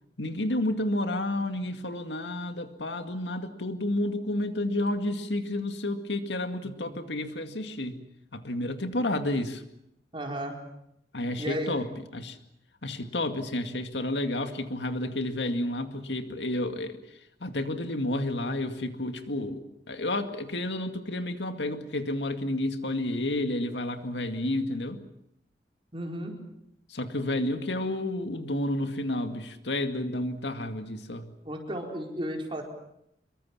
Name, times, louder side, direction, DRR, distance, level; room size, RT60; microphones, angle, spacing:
voice 1, 0.2-8.0 8.3-9.6 11.1-11.9 12.1-12.4 12.8-17.0 17.4-19.6 19.9-25.0 26.9-31.3, left 1 dB, 85° left, 7 dB, 2.2 m, -30 dB
voice 2, 6.6-7.0 10.1-10.6 11.4-11.7 25.9-26.4 31.4-32.6, equal, 30° right, 1 dB, 4.6 m, -34 dB
25.5 x 23.0 x 7.4 m, 0.79 s
head